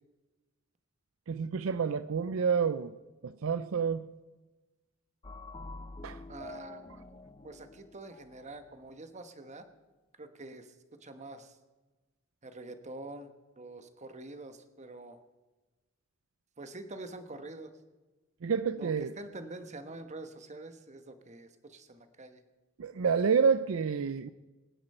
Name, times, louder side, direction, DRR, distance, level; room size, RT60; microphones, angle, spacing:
voice 1, 1.3-3.0 3.2-4.1 6.0-6.2 18.4-19.1 22.8-24.3, right 6 dB, 70° right, 13 dB, 0.5 m, -29 dB
sound 1, 5.2-8.9, left 2 dB, 25° left, 0.6 m, -47 dB
voice 2, 6.3-9.7 10.2-10.7 11.0-11.6 12.4-15.2 16.6-17.7 18.7-22.4, right 2 dB, 35° right, 8 dB, 1.3 m, -46 dB
25.5 x 10.0 x 4.4 m, 1.2 s
head